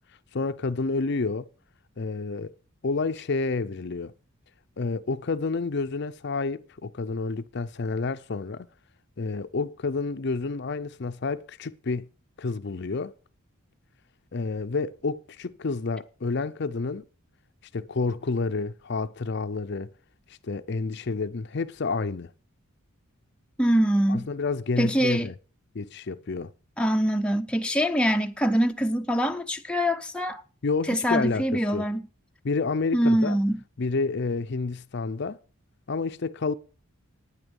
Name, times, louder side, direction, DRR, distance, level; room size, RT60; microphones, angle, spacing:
voice 1, 0.3-1.5 2.0-2.5 2.8-4.1 4.8-8.7 9.2-12.1 12.4-13.1 14.3-17.0 17.7-19.9 20.4-22.3 24.1-25.3 25.7-26.5 30.6-31.9 32.4-33.4 33.8-35.4 35.9-36.5, left 4 dB, 50° left, 0.5 m, -29 dB
voice 2, 23.6-24.3 24.8-25.3 26.8-30.4 30.9-32.0 32.9-33.6, equal, 5° left, 0.6 m, -24 dB
11.0 x 9.6 x 5.3 m
head